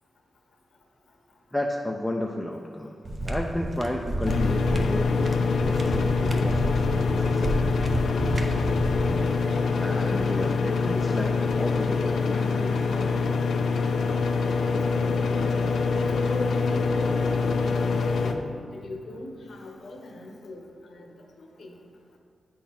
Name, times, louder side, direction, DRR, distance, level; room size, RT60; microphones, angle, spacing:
voice 1, 1.5-3.0 3.2-7.6 9.0-9.5 9.8-13.6, left 1 dB, 10° left, 1 dB, 0.4 m, -33 dB
sound 1, 3.0-9.2, right 1 dB, 40° right, 0.6 m, -30 dB
sound 2, 4.3-18.3, left 4 dB, 85° left, 0.5 m, -25 dB
voice 2, 14.8-15.4 16.0-18.4 18.7-21.8, left 2 dB, 65° left, 1 dB, 0.9 m, -39 dB
9.1 x 3.9 x 4.2 m, 2.3 s
wide cardioid pair, 100°, 0 cm